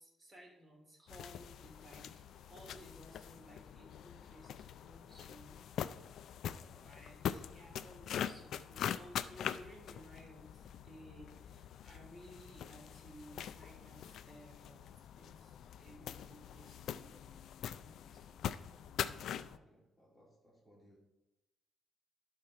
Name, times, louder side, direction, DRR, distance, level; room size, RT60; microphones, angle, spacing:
voice 1, 0.0-5.6 6.8-17.3 17.7-18.6 19.3-19.7, equal, 20° right, -1 dB, 3.2 m, -58 dB
sound 1, 1.1-19.6, left 9 dB, 70° left, 0.4 m, -44 dB
voice 2, 6.5-7.0 7.6-8.1 19.3-21.0, equal, 5° left, -5 dB, 3.6 m, -66 dB
12.0 x 4.3 x 4.9 m, 0.99 s
cardioid pair, 90°, 0 cm